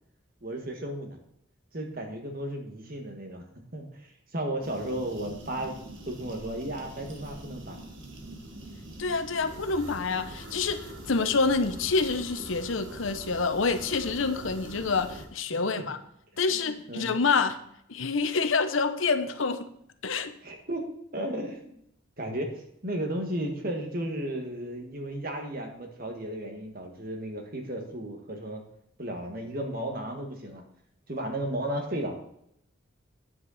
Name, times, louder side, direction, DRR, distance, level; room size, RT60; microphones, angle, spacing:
voice 1, 0.4-1.2 1.7-3.4 3.7-5.8 6.1-7.8 15.5-15.8 16.5-17.1 20.4-21.8 22.2-28.6 29.0-30.6 31.1-32.2, right 1 dB, 45° right, 3 dB, 1.8 m, -34 dB
sound 1, 4.6-15.3, right 1 dB, 70° right, 1.6 m, -43 dB
voice 2, 9.0-16.0 16.4-17.6 17.9-19.7 20.0-20.3, left 4 dB, 75° left, 9 dB, 0.9 m, -27 dB
9.5 x 8.2 x 4.2 m, 0.73 s
head